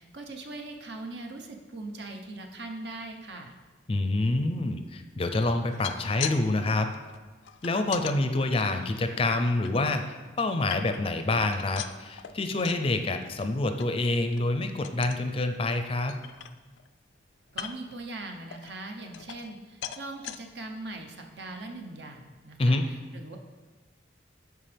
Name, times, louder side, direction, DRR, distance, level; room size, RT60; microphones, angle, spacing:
voice 1, 0.0-3.6 17.5-23.4, right 2 dB, 65° right, 3 dB, 0.9 m, -41 dB
voice 2, 3.9-6.9 7.6-10.0 10.4-16.1 22.6-22.8, left 2 dB, 30° left, 7 dB, 0.5 m, -27 dB
sound 1, 5.6-6.4 6.7-8.2 8.7-9.7 10.2-11.2 11.5-12.9 13.2-13.5 13.8-13.9 14.3-14.5 14.8-15.2 15.7-15.8 16.1-16.9 17.5-18.0 18.5-19.6 19.8-20.4 21.0-21.1 21.4-21.5, left 10 dB, 85° left, 0.4 m, -40 dB
13.0 x 4.8 x 3.4 m, 1.3 s
head